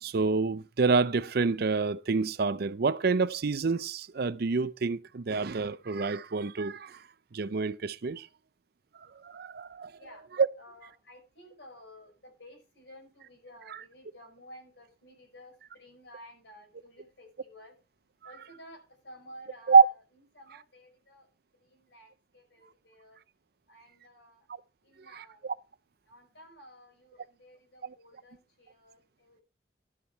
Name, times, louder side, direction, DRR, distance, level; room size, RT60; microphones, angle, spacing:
voice 1, 0.0-7.0 7.3-8.3 9.2-10.0 10.4-10.5 19.7-19.8 25.1-25.5 27.8-27.9, right 4 dB, 60° right, 0.6 m, -27 dB
voice 2, 10.0-10.3 10.6-17.8 18.2-21.3 21.6-23.2 23.7-24.5 24.8-25.4 26.1-29.4, equal, 80° left, 5.2 m, -53 dB
12.5 x 7.1 x 4.6 m
head